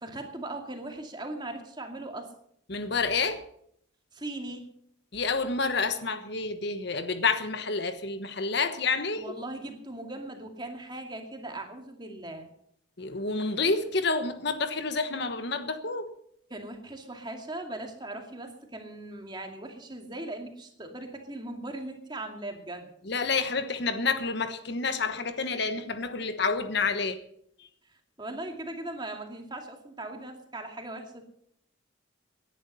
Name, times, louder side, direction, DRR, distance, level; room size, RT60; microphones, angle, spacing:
voice 1, 0.0-2.3 4.1-4.6 9.2-12.5 16.5-22.9 28.2-31.2, right 2 dB, 20° right, 4 dB, 2.3 m, -39 dB
voice 2, 2.7-3.4 5.1-9.3 13.0-16.1 23.0-27.2, left 4 dB, 55° left, 9 dB, 1.2 m, -29 dB
17.5 x 11.0 x 5.5 m, 0.70 s
head